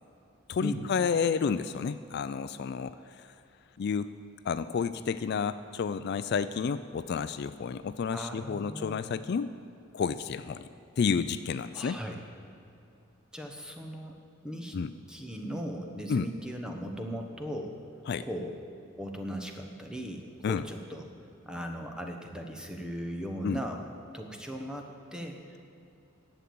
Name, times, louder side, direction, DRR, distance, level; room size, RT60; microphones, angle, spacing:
voice 1, 0.5-3.3 3.8-4.1 4.4-9.5 9.9-10.7 11.0-12.0 14.7-14.9 16.1-16.3 18.1-18.3 20.4-20.6 23.4-23.6, left 6 dB, 55° left, 13 dB, 0.3 m, -30 dB
voice 2, 8.1-9.1 11.7-12.2 13.3-14.2 14.4-14.8 15.1-17.7 18.2-18.5 19.0-21.1 21.5-23.8 24.1-25.6, equal, 5° right, 3 dB, 1.1 m, -38 dB
11.0 x 7.2 x 8.5 m, 2.8 s
head